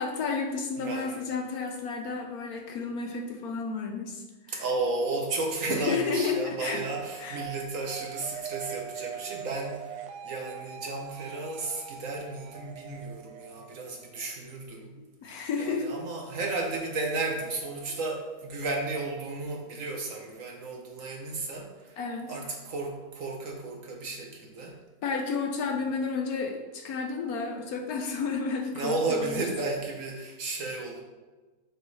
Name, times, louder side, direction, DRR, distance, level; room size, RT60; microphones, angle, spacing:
voice 1, 0.0-4.7 5.7-6.9 7.2-7.4 15.0-16.0 17.9-18.0 22.0-22.3 25.0-29.4, left 4 dB, 70° left, 4 dB, 1.1 m, -32 dB
voice 2, 0.8-1.2 4.5-14.9 15.6-22.0 22.3-24.7 25.9-26.1 28.7-31.0, right 3 dB, 55° right, 1 dB, 1.1 m, -33 dB
sound 1, 6.9-14.4, right 9 dB, 85° right, 1.4 m, -42 dB
6.4 x 5.0 x 4.0 m, 1.3 s
omnidirectional pair, 1.9 m